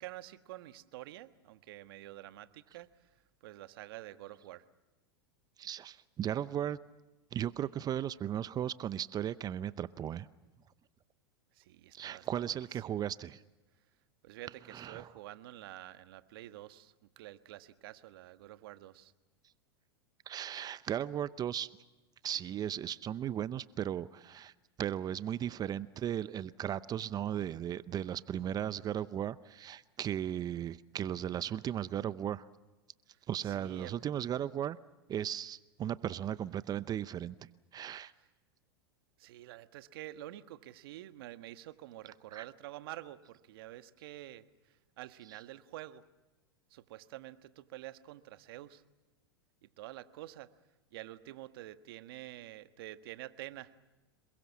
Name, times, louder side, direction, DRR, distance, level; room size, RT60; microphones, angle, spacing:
voice 1, 0.0-4.6 11.5-12.5 14.2-19.1 33.1-33.9 38.2-38.3 39.2-46.1 46.7-48.8 49.8-50.5 50.9-53.7, right 15 dB, 65° right, 11 dB, 1.4 m, -48 dB
voice 2, 5.6-6.8 7.3-10.3 11.9-13.4 14.7-15.1 20.3-21.7 22.2-24.5 24.8-32.5 33.3-34.8 35.1-37.4 37.7-38.1 42.3-42.4, right 10 dB, 30° right, 16 dB, 0.7 m, -36 dB
27.0 x 22.5 x 7.3 m, 1.1 s
hypercardioid pair, 100°, 13 cm